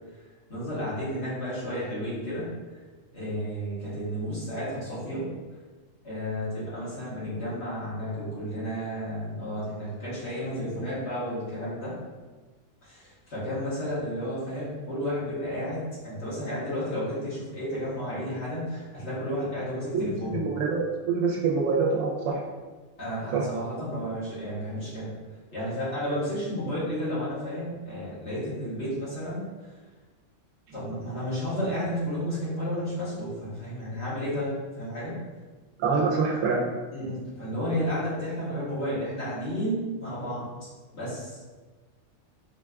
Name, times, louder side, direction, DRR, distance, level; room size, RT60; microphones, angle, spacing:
voice 1, 0.5-2.5 3.1-5.3 6.0-11.9 12.8-20.4 23.0-25.1 25.5-29.4 30.7-35.2 36.9-40.5 40.9-41.4, equal, 55° left, -11 dB, 1.6 m, -32 dB
voice 2, 19.9-22.4 23.3-23.4 35.8-36.6, right 4 dB, 80° right, -2 dB, 0.9 m, -25 dB
4.0 x 2.2 x 2.3 m, 1.3 s
omnidirectional pair, 1.3 m